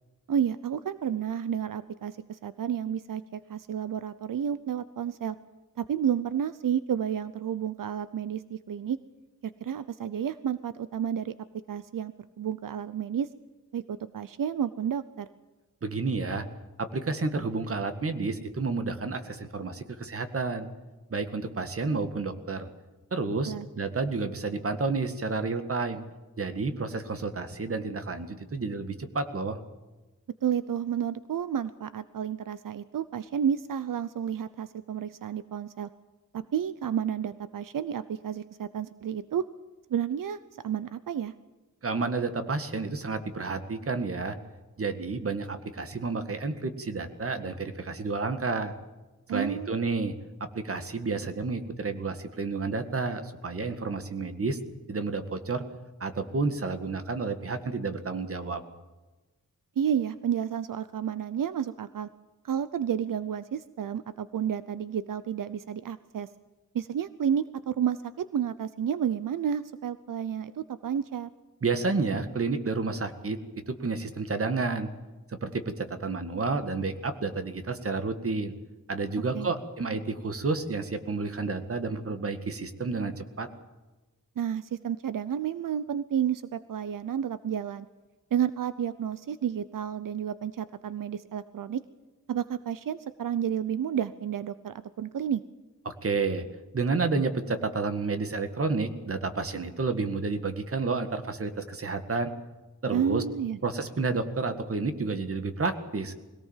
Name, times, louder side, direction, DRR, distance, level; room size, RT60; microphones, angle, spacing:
voice 1, 0.3-5.4 5.8-9.0 9.6-11.3 11.7-13.3 13.7-15.3 23.4-23.7 30.4-35.9 36.3-39.4 39.9-40.4 40.6-41.3 49.3-49.7 59.8-62.1 62.4-66.3 66.7-71.3 79.3-79.5 84.4-87.9 88.3-91.8 92.3-95.4 102.9-103.6, right 8 dB, 80° right, 14 dB, 0.8 m, -31 dB
voice 2, 15.8-16.5 16.8-20.7 21.1-22.7 23.1-26.0 26.4-29.6 41.8-44.4 44.8-48.7 49.3-50.1 50.5-54.6 54.9-55.6 56.0-58.6 71.6-73.4 73.7-74.9 75.4-78.5 78.9-83.5 95.9-96.4 96.7-102.3 102.8-103.2 103.6-106.1, right 4 dB, 45° right, 8 dB, 1.9 m, -30 dB
21.5 x 17.5 x 7.4 m, 1.2 s
wide cardioid pair, 160°, 32 cm